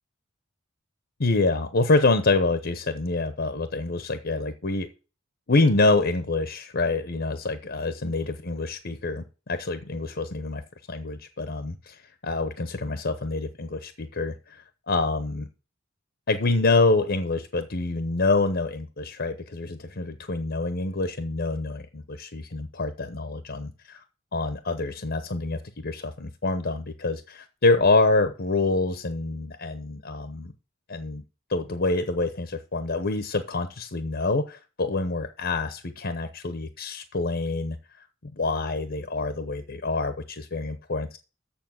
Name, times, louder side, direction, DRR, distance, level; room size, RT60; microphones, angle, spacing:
voice 1, 1.2-4.9 5.5-10.6 10.9-15.5 16.3-24.0 24.3-30.5 30.9-31.2 31.5-37.8 38.2-41.2, left 3 dB, 50° left, 9 dB, 0.9 m, -26 dB
7.1 x 7.0 x 7.4 m, 0.33 s
head